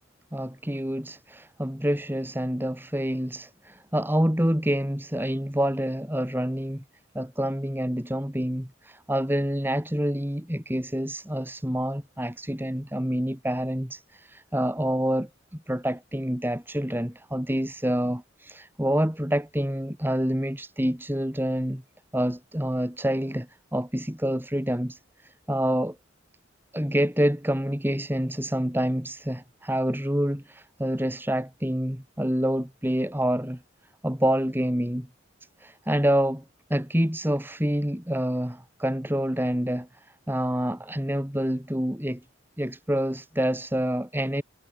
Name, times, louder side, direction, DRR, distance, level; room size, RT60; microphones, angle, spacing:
voice 1, 0.3-6.8 7.1-21.8 22.1-26.0 26.7-33.6 34.0-35.1 35.6-36.4 36.7-42.2 42.6-44.4, equal, 10° right, 2.3 m, -27 dB
head